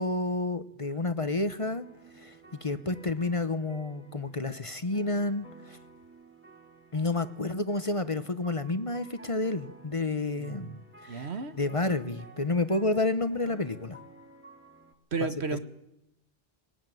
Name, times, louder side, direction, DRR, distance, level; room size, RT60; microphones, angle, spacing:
voice 1, 0.0-1.8 2.1-2.3 2.6-5.8 6.9-11.3 11.6-14.0 15.2-15.3, left 2 dB, 30° left, 12 dB, 1.0 m, -30 dB
sound 1, 1.6-14.9, right 2 dB, 10° right, 2.2 m, -53 dB
voice 2, 10.4-10.7 11.1-11.5 15.1-15.6, right 4 dB, 75° right, 10 dB, 1.6 m, -33 dB
21.0 x 19.0 x 9.2 m, 0.85 s
omnidirectional pair, 1.1 m